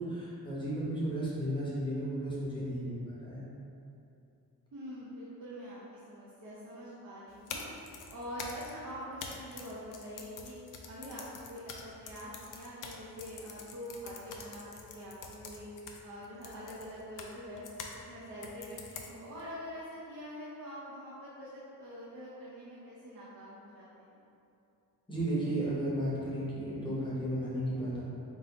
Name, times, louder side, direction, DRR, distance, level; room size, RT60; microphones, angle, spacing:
voice 1, 0.0-3.4 25.1-28.0, right 1 dB, 15° left, -8 dB, 0.9 m, -34 dB
voice 2, 4.7-7.6 8.1-10.6 10.9-15.7 16.0-17.6 17.9-24.2, equal, 50° right, -9 dB, 0.8 m, -45 dB
sound 1, 7.3-18.0 18.4-19.4, left 5 dB, 55° left, 0.5 m, -46 dB
3.9 x 2.6 x 4.0 m, 2.8 s
wide cardioid pair, 170°, 38 cm